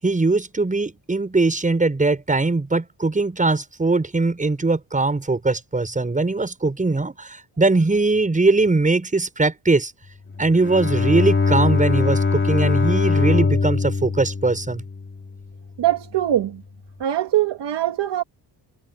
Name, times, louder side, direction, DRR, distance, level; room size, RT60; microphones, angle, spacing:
voice 1, 0.0-9.9 10.4-14.8, right 3 dB, 20° right, 6.8 m, -21 dB
Bowed string instrument, 10.3-15.5, left 4 dB, 30° left, 3.4 m, -22 dB
voice 2, 15.8-16.6 17.0-18.2, right 12 dB, 90° right, 2.5 m, -22 dB
wide cardioid pair, 145°, 40 cm